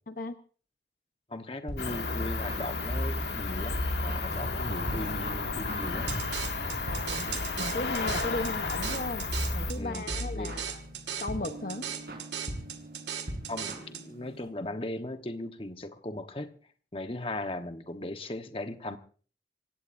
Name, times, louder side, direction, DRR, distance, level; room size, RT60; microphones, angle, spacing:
voice 1, 1.3-6.1 6.6-6.8 9.7-10.6 13.5-16.5 16.9-19.0, left 1 dB, 30° left, 8 dB, 1.2 m, -38 dB
sound 1, 1.7-14.5, equal, 60° right, 5.8 m, -39 dB
Cricket, 1.8-9.7, left 3 dB, 70° left, 2.1 m, -33 dB
sound 2, 6.1-14.0, right 9 dB, 80° right, 2.1 m, -38 dB
voice 2, 6.8-7.3 7.6-9.2 9.5-10.8 11.2-11.9, left 2 dB, 50° left, 8 dB, 1.0 m, -36 dB
27.0 x 16.5 x 2.7 m, 0.41 s
head